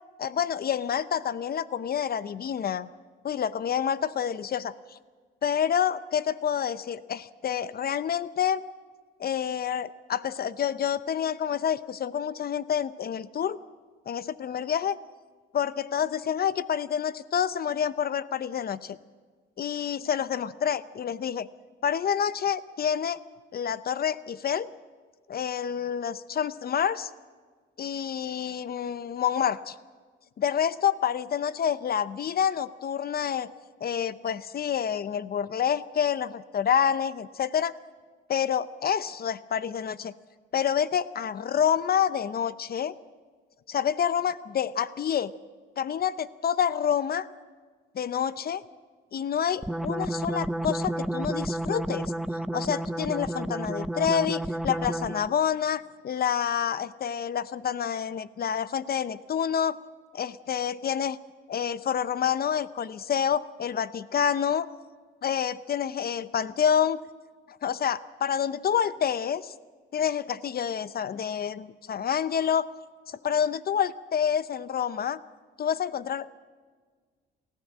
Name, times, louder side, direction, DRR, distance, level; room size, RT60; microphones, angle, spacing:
voice 1, 0.2-2.9 3.2-5.0 5.4-8.6 9.2-13.6 14.1-15.0 15.5-19.0 19.6-21.5 21.8-23.2 23.5-24.7 25.3-27.1 27.8-29.8 30.4-33.5 33.8-37.7 38.3-40.1 40.5-42.9 43.7-45.3 45.8-47.3 47.9-48.6 49.1-59.8 60.1-61.2 61.5-64.7 65.2-67.0 67.6-69.5 69.9-72.7 73.1-75.2 75.6-76.3, left 8 dB, 50° left, 16 dB, 0.7 m, -28 dB
sound 1, 49.6-55.4, right 1 dB, ahead, 0.7 m, -31 dB
28.0 x 14.5 x 7.4 m, 1.5 s
cardioid pair, 90°, 20 cm